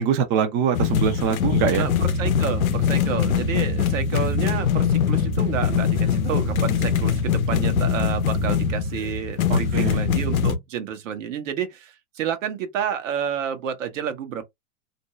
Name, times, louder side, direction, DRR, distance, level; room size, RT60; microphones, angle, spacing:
voice 1, 0.0-1.9 9.5-10.0, right 8 dB, 30° right, 0.5 m, -23 dB
sound 1, 0.7-10.6, left 6 dB, 85° left, 0.6 m, -22 dB
voice 2, 1.8-14.4, right 8 dB, 65° right, 0.9 m, -30 dB
2.6 x 2.2 x 2.9 m
hypercardioid pair, 110°, 41 cm